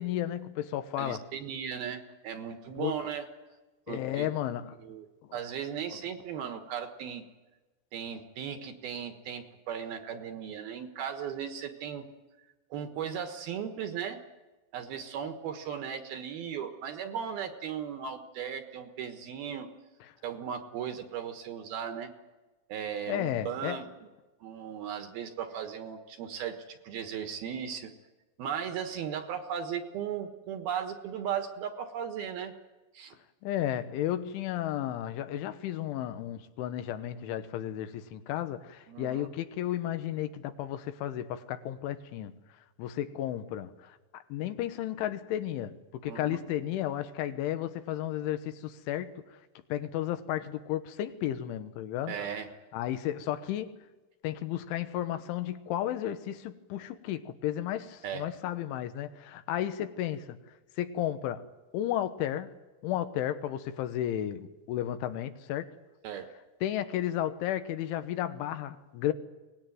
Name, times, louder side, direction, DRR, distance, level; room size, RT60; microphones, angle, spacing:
voice 1, 0.0-1.2 2.8-2.9 3.9-4.8 5.3-5.4 23.1-23.8 33.4-42.4 42.8-49.2 49.7-52.2 52.7-53.7 54.2-60.4 60.8-61.4 61.7-62.5 62.8-65.7 66.6-69.1, left 12 dB, 85° left, 3.6 m, -33 dB
voice 2, 1.0-3.3 3.9-4.3 4.8-5.1 5.3-7.2 7.9-12.1 12.7-14.2 14.7-19.7 20.2-22.1 22.7-23.9 24.4-27.9 28.4-32.5 32.9-33.2 38.9-39.3 46.0-46.4 52.1-52.5 58.0-58.2 66.0-66.3, right 8 dB, 65° right, 2.8 m, -37 dB
24.0 x 19.0 x 9.3 m
omnidirectional pair, 5.4 m